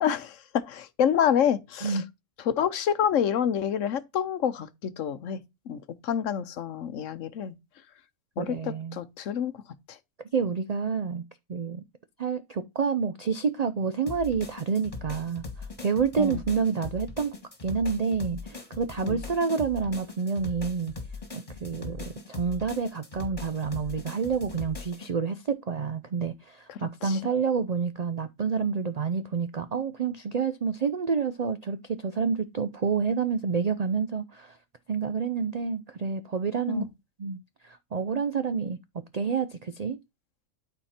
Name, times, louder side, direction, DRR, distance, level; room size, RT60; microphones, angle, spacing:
voice 1, 0.0-2.0 2.5-5.4 5.7-7.6 8.4-9.5 9.9-10.0 16.2-16.4 19.0-19.2 26.7-27.2 36.7-36.9, left 8 dB, 65° left, 1.1 m, -28 dB
voice 2, 8.4-9.0 10.3-11.8 12.2-17.3 17.6-20.9 21.3-34.6 34.9-36.8 37.2-40.0, right 5 dB, 85° right, 0.3 m, -29 dB
sound 1, 14.1-25.1, left 3 dB, 25° left, 1.9 m, -40 dB
12.0 x 4.4 x 4.3 m
omnidirectional pair, 1.4 m